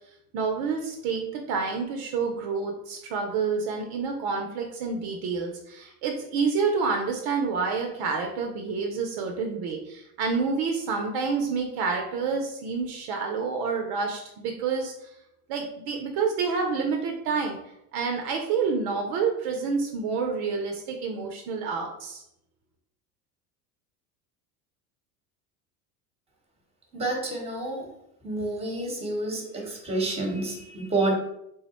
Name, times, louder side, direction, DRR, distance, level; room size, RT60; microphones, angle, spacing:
voice 1, 0.3-15.1 15.5-17.6 17.9-22.2, right 5 dB, 55° right, 3 dB, 0.6 m, -28 dB
voice 2, 26.9-27.9 28.2-31.1, right 2 dB, 15° right, 1 dB, 1.0 m, -29 dB
3.4 x 2.1 x 4.1 m, 0.82 s
supercardioid pair, 95°, 44 cm